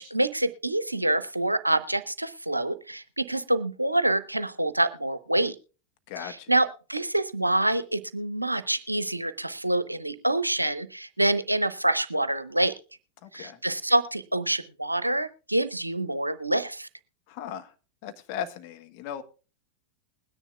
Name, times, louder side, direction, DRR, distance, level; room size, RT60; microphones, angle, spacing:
voice 1, 0.0-5.6 6.2-12.7 13.3-16.9, right 1 dB, 85° right, 0.7 m, -26 dB
voice 2, 6.1-6.5 13.2-13.6 17.3-17.7 18.0-19.2, left 9 dB, 45° left, 1.1 m, -37 dB
21.0 x 10.0 x 2.3 m
figure-of-eight pair, 90°, 0 cm